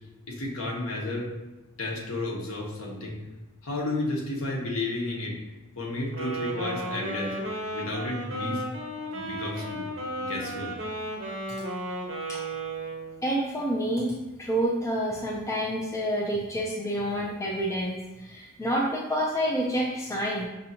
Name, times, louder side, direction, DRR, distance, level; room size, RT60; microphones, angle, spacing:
voice 1, 0.3-1.3 1.8-3.2 3.6-5.4 5.8-7.4 7.7-8.6 9.1-9.9 10.2-10.7, left 2 dB, 80° left, -2 dB, 0.9 m, -32 dB
Wind instrument woodwind instrument, 6.1-13.2, right 1 dB, 70° right, 0.8 m, -34 dB
voice 2, 13.2-20.5, equal, 15° left, -3 dB, 0.4 m, -28 dB
5.2 x 2.8 x 2.8 m, 1.1 s
head